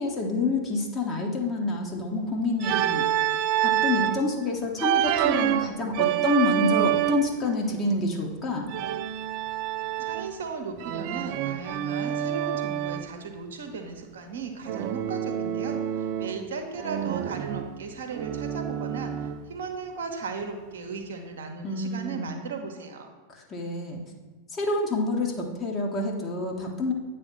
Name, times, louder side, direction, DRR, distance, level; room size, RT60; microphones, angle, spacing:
voice 1, 0.0-3.1 3.6-8.7 21.6-22.3 23.3-24.0 24.5-26.9, left 2 dB, 25° left, 0 dB, 1.1 m, -28 dB
Organ, 2.6-4.2 4.8-7.4 8.7-10.4 10.8-13.1 14.7-16.5 16.8-19.5, right 11 dB, 45° right, 0.3 m, -27 dB
voice 2, 10.0-23.1, right 4 dB, 60° right, 5 dB, 1.0 m, -36 dB
8.9 x 3.3 x 5.6 m, 1.4 s
figure-of-eight pair, 90°, 0 cm